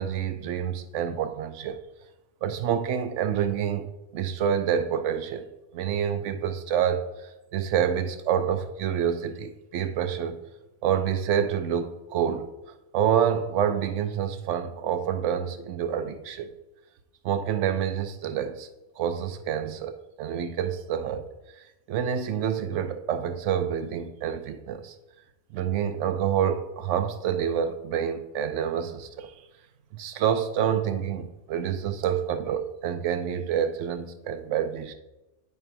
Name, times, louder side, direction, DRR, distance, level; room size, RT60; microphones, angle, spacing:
voice 1, 0.0-1.8 2.4-3.9 4.1-5.5 5.7-7.1 7.5-10.4 10.8-12.5 12.9-16.5 17.2-18.7 19.0-21.2 21.9-24.9 25.5-29.3 29.9-34.9, right 8 dB, 80° right, 0.9 m, -27 dB
9.5 x 3.4 x 4.4 m
omnidirectional pair, 1.2 m